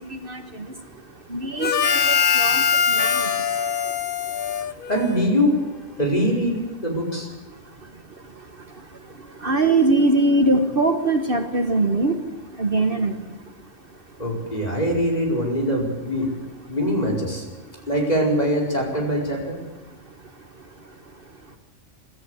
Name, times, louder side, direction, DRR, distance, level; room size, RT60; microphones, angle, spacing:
voice 1, 0.1-0.4 1.3-2.6 2.9-3.1 9.4-12.2 12.6-13.1, right 2 dB, 45° right, 6 dB, 1.5 m, -21 dB
Harmonica, 1.6-5.4, left 6 dB, 50° left, 0.9 m, -22 dB
voice 2, 4.9-5.6 6.0-7.3 14.2-16.3 16.7-17.4 17.9-19.5, equal, 30° left, 0 dB, 5.0 m, -22 dB
24.0 x 13.5 x 8.1 m, 1.1 s
omnidirectional pair, 1.3 m